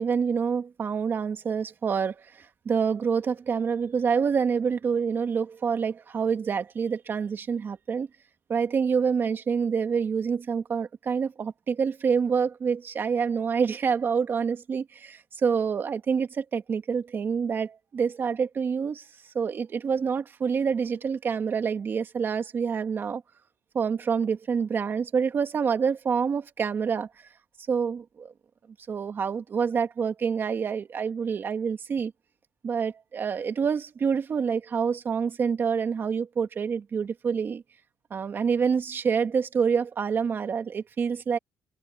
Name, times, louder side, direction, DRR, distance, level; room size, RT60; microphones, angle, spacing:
voice 1, 0.0-8.1 8.5-19.1 19.3-23.2 23.7-27.1 27.7-28.3 28.9-32.1 32.6-37.6 38.1-41.4, right 6 dB, 35° right, 2.1 m, -27 dB
cardioid pair, 130°, 6 cm